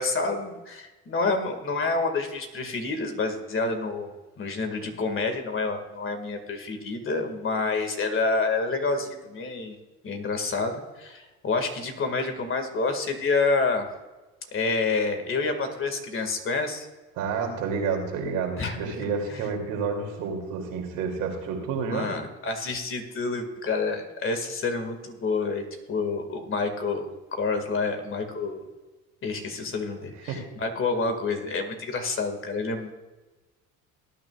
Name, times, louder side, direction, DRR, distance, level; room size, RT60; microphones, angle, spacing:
voice 1, 0.0-9.8 10.0-13.9 14.5-16.9 18.6-18.9 19.3-19.5 21.8-28.7 29.2-32.9, left 3 dB, 40° left, 6 dB, 2.1 m, -28 dB
voice 2, 17.2-22.1 30.3-30.4, right 5 dB, 75° right, 1 dB, 2.8 m, -29 dB
19.0 x 9.7 x 2.4 m, 1.2 s
supercardioid pair, 85°, 33 cm